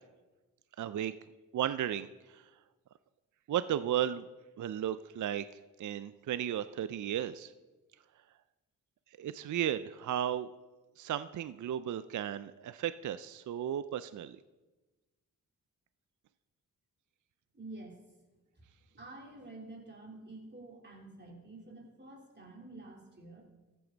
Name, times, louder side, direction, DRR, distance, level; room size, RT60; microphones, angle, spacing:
voice 1, 0.8-1.1 1.5-2.5 3.5-4.3 4.6-5.5 5.8-7.5 9.2-10.5 11.0-14.4, right 10 dB, 55° right, 14 dB, 0.5 m, -34 dB
voice 2, 17.5-18.0 18.6-18.7 18.9-23.4, right 2 dB, 30° right, -1 dB, 3.5 m, -49 dB
14.0 x 8.5 x 4.0 m, 1.2 s
cardioid pair, 50°, 35 cm